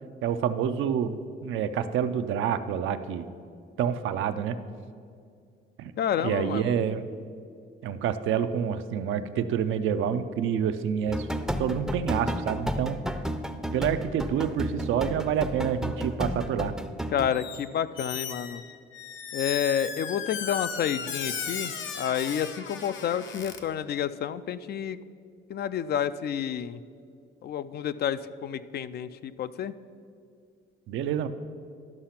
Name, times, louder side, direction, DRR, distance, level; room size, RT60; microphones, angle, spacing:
voice 1, 0.2-3.3 3.8-4.6 5.8-5.9 6.2-7.0 7.8-11.3 11.6-13.0 13.7-16.7 30.9-31.3, right 8 dB, 80° right, 10 dB, 0.5 m, -28 dB
voice 2, 6.0-6.8 17.1-18.6 19.3-25.0 25.5-26.8 27.4-29.7, left 9 dB, 55° left, 14 dB, 0.4 m, -30 dB
sound 1, 11.1-17.3, equal, ahead, 0.5 m, -32 dB
Squeak, 17.3-17.7 18.0-23.6, left 6 dB, 75° left, 0.8 m, -36 dB
12.0 x 5.7 x 5.8 m, 2.3 s
cardioid pair, 90°, 20 cm